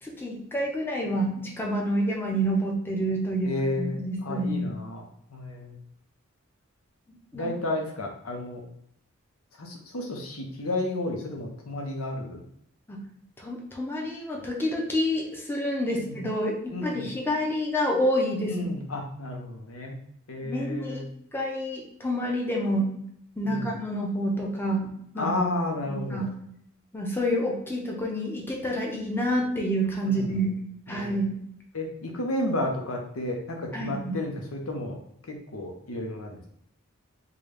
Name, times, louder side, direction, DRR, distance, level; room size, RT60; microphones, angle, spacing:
voice 1, 0.0-4.7 7.3-7.5 12.9-13.0 13.4-16.6 16.8-18.6 20.4-21.0 21.3-22.9 23.4-25.3 25.9-26.4 26.9-30.5 30.9-31.4 33.7-34.2, equal, 10° left, -1 dB, 0.6 m, -28 dB
voice 2, 3.4-5.8 7.3-8.6 9.6-12.4 15.9-16.2 16.7-17.0 18.4-20.0 20.3-21.1 23.4-23.7 25.2-26.3 30.1-30.3 30.9-31.2 31.7-35.0 35.3-36.5, left 1 dB, 85° left, 2 dB, 0.8 m, -32 dB
3.9 x 2.3 x 3.3 m, 0.70 s
head